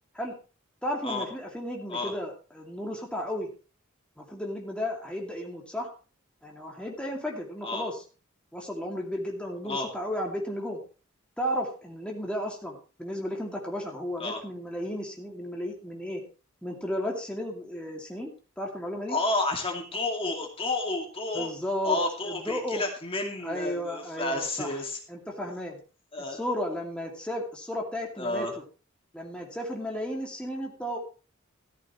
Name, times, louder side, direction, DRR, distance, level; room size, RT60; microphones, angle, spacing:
voice 1, 0.8-3.5 4.2-5.9 6.4-8.0 8.5-10.8 11.4-16.2 16.6-19.2 21.3-22.0 22.2-22.8 23.4-24.8 25.1-25.8 26.3-28.5 29.1-31.0, equal, 5° left, -1 dB, 2.3 m, -34 dB
voice 2, 19.1-21.5 21.8-25.0 26.1-26.4 28.2-28.5, left 2 dB, 25° left, 2 dB, 2.3 m, -30 dB
14.0 x 13.5 x 3.1 m, 0.35 s
head